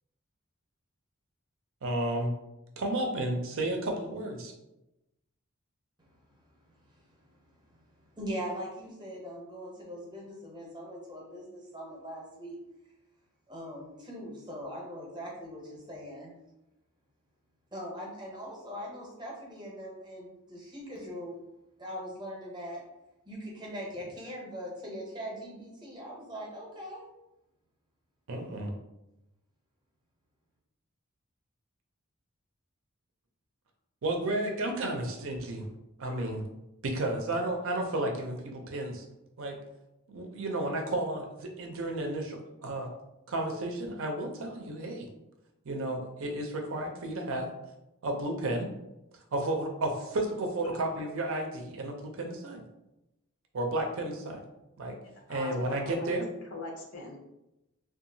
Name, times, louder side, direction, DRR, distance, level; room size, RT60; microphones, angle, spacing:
voice 1, 1.8-2.3 2.8-4.5 28.3-28.7 34.0-35.7 36.0-36.4 36.8-39.0 39.4-39.6 40.1-42.9 43.3-45.1 45.7-47.5 48.0-48.7 49.3-52.6 53.5-54.4 54.8-55.0 55.3-56.3, right 1 dB, 65° right, 2 dB, 0.5 m, -32 dB
voice 2, 8.1-12.6 13.5-16.3 17.7-21.4 21.8-22.8 23.3-27.1, equal, 20° right, -3 dB, 0.7 m, -41 dB
voice 3, 55.3-56.1 56.5-57.2, left 2 dB, 70° left, 1 dB, 0.6 m, -40 dB
2.7 x 2.4 x 2.6 m, 0.92 s
head